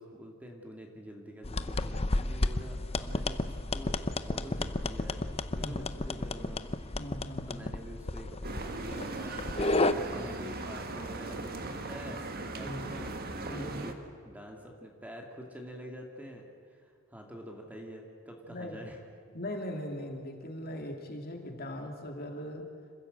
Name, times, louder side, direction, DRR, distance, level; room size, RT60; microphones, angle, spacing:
voice 1, 0.0-5.2 5.5-6.6 7.5-13.2 13.5-14.0 14.2-19.0, equal, 10° right, 1 dB, 2.3 m, -46 dB
sound 1, 1.4-9.9, left 2 dB, 30° left, 0.7 m, -32 dB
voice 2, 5.6-5.9 6.9-7.7 12.6-12.9 13.5-13.8 18.5-18.8 19.3-22.6, left 1 dB, 50° left, 3 dB, 2.9 m, -40 dB
sound 2, 8.4-13.9, right 2 dB, 45° right, 1.6 m, -38 dB
27.0 x 15.0 x 8.0 m, 2.2 s
head